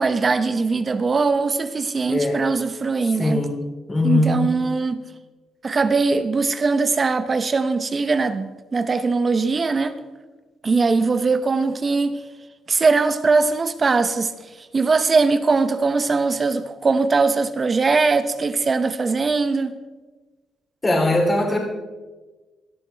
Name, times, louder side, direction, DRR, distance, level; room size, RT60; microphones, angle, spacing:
voice 1, 0.0-3.4 4.0-5.0 5.6-9.9 10.6-12.2 12.7-14.3 14.6-19.7, right 4 dB, 35° right, 0.9 m, -21 dB
voice 2, 2.1-2.5 3.2-4.4 20.8-21.6, left 2 dB, 25° left, 3.2 m, -21 dB
18.0 x 13.0 x 3.5 m
cardioid pair, 90°, 0 cm